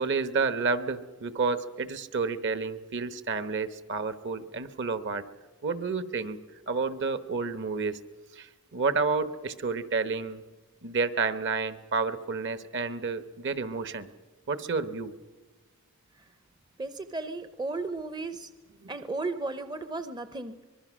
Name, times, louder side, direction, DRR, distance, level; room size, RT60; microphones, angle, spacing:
voice 1, 0.0-5.2 5.6-6.4 6.7-8.0 8.4-8.5 8.7-10.4 10.8-14.1 14.5-15.1 18.8-18.9, right 4 dB, 55° right, 12 dB, 1.0 m, -30 dB
voice 2, 16.8-18.5 18.9-20.6, right 3 dB, 20° right, 11 dB, 0.6 m, -34 dB
24.5 x 21.5 x 6.2 m, 1.3 s
head